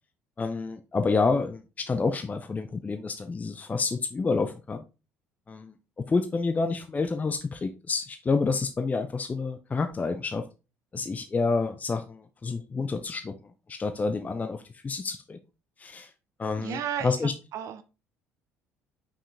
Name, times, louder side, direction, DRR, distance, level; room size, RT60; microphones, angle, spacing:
voice 1, 0.4-4.8 5.5-10.5 10.9-13.4 13.7-15.4 15.8-16.1 16.4-17.3, left 4 dB, 20° left, 8 dB, 0.6 m, -29 dB
voice 2, 16.6-17.8, right 9 dB, 50° right, 10 dB, 0.7 m, -34 dB
5.7 x 4.8 x 3.5 m, 0.30 s
figure-of-eight pair, 55°, 7 cm